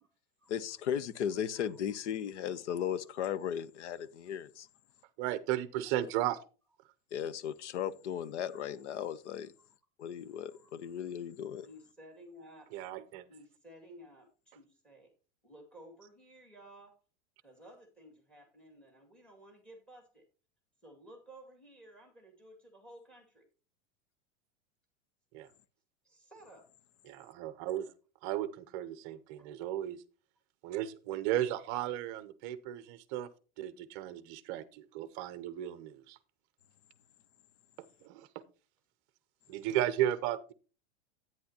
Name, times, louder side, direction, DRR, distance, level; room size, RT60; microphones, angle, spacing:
voice 1, 0.5-4.7 7.1-9.5 10.0-11.7, left 9 dB, 85° left, 1.0 m, -36 dB
voice 2, 5.2-6.4 12.7-13.2 25.3-25.5 27.1-27.9 28.2-30.0 30.6-33.3 33.6-36.2 38.0-38.4 39.5-40.5, right 12 dB, 30° right, 0.7 m, -35 dB
voice 3, 10.4-10.7 11.6-12.7 13.3-15.1 15.4-17.0 17.4-20.2 20.8-23.5 26.0-26.7 29.4-29.5, equal, 5° left, 2.1 m, -55 dB
10.5 x 9.3 x 2.8 m
supercardioid pair, 175°, 34 cm